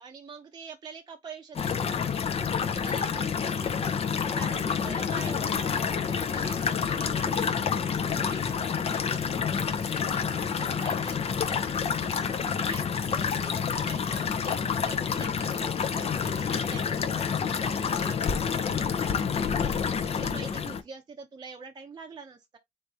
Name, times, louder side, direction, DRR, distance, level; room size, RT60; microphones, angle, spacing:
voice 1, 0.0-3.7 4.3-22.6, right 5 dB, 25° right, 0.7 m, -46 dB
sound 1, 1.5-20.8, left 6 dB, 35° left, 0.7 m, -28 dB
3.5 x 3.2 x 4.1 m
cardioid pair, 110°, 17 cm